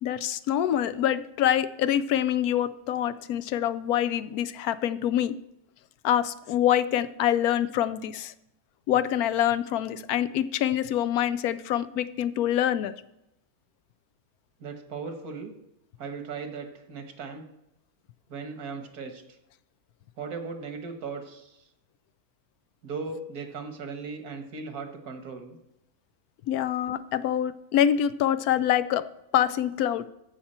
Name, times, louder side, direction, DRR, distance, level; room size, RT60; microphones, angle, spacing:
voice 1, 0.0-5.4 6.0-8.3 8.9-12.9 26.5-29.1 29.3-30.1, left 10 dB, 80° left, 14 dB, 1.1 m, -25 dB
voice 2, 14.6-15.5 16.0-17.4 18.3-19.2 20.2-21.6 22.8-25.6, right 4 dB, 75° right, 6 dB, 1.7 m, -37 dB
14.5 x 5.8 x 4.3 m, 0.85 s
omnidirectional pair, 1.6 m